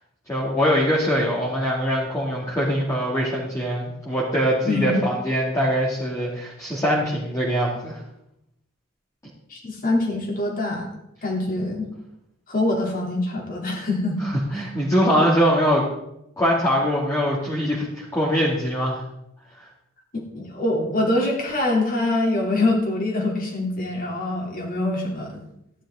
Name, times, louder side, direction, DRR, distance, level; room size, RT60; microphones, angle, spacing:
voice 1, 0.3-8.0 14.5-15.8 16.4-19.0, equal, 15° left, -6 dB, 2.3 m, -22 dB
voice 2, 4.7-5.0 9.5-10.9 11.2-11.9 12.5-14.2 20.1-25.4, left 2 dB, 45° left, 0 dB, 3.1 m, -24 dB
14.5 x 11.0 x 3.8 m, 0.81 s
head